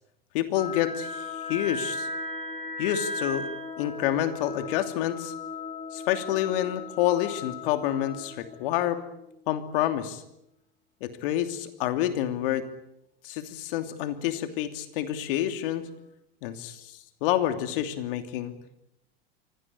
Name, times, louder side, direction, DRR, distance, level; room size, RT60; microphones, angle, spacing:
voice 1, 0.3-2.1 2.8-3.5 3.8-5.3 5.9-9.0 9.5-10.2 11.0-12.6 13.2-15.9 16.4-18.5, left 12 dB, 65° left, 8 dB, 3.0 m, -28 dB
sound 1, 0.6-10.1, left 2 dB, 25° left, 4.4 m, -37 dB
24.5 x 17.5 x 10.0 m, 0.82 s
hypercardioid pair, 90°, 29 cm